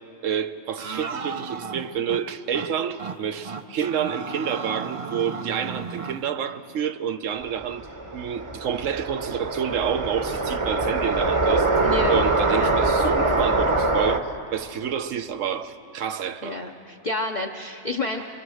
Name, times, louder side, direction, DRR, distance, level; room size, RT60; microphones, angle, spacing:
voice 1, 0.2-7.9 8.1-11.8 12.1-16.6 18.2-18.3, right 8 dB, 70° right, 1.1 m, -29 dB
sound 1, 0.8-2.2 2.5-2.7 3.0-3.2 3.5-6.2, right 5 dB, 45° right, 0.4 m, -34 dB
sound 2, 7.4-14.2, right 2 dB, 25° right, 0.9 m, -23 dB
voice 2, 11.8-12.2 12.5-12.7 16.4-18.2, left 2 dB, 40° left, 0.7 m, -29 dB
24.0 x 23.5 x 6.4 m
omnidirectional pair, 1.4 m